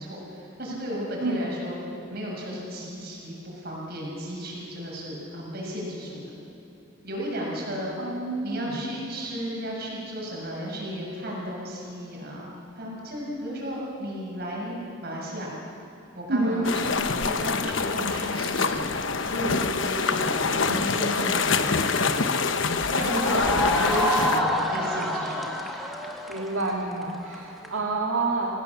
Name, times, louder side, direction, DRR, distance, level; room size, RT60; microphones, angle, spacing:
voice 1, 0.0-1.8 2.1-6.4 7.0-7.9 8.4-15.5 16.1-25.5, equal, 50° right, -3 dB, 6.8 m, -34 dB
voice 2, 1.2-1.5 8.0-8.8 16.3-16.6 26.3-28.5, right 2 dB, 70° right, -2 dB, 2.1 m, -28 dB
sound 1, 16.6-24.4, left 4 dB, 65° left, 1.0 m, -25 dB
sound 2, 23.0-27.7, equal, ahead, 1.9 m, -28 dB
27.0 x 17.5 x 7.2 m, 3.0 s
head